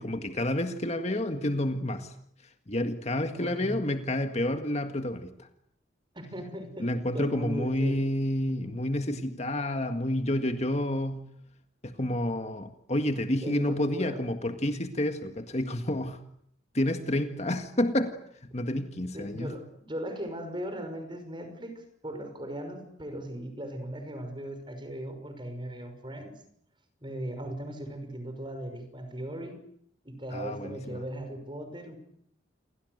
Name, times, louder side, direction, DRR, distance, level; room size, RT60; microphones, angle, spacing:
voice 1, 0.0-2.1 2.7-5.5 6.8-11.3 11.8-16.2 16.7-18.2 18.5-19.5 30.3-31.0, left 1 dB, 35° left, 1.8 m, -29 dB
voice 2, 3.4-3.8 6.1-6.9 7.1-8.0 13.4-14.2 19.1-26.3 27.0-29.6 30.0-32.0, right 1 dB, 25° right, 5.9 m, -38 dB
29.0 x 23.0 x 8.1 m
head